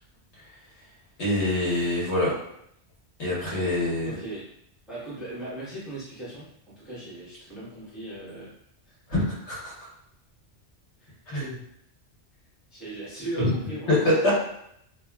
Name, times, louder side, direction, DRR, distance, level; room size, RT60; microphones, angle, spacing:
voice 1, 1.2-2.4 3.2-4.1 9.1-9.7 11.3-11.6 13.4-13.5 13.9-14.3, left 1 dB, 80° left, -6 dB, 1.3 m, -25 dB
voice 2, 4.0-4.4 4.9-8.5 8.8-9.0 11.0-11.2 12.7-14.3, right 2 dB, ahead, -10 dB, 0.9 m, -38 dB
2.9 x 2.3 x 2.2 m, 0.73 s
omnidirectional pair, 1.1 m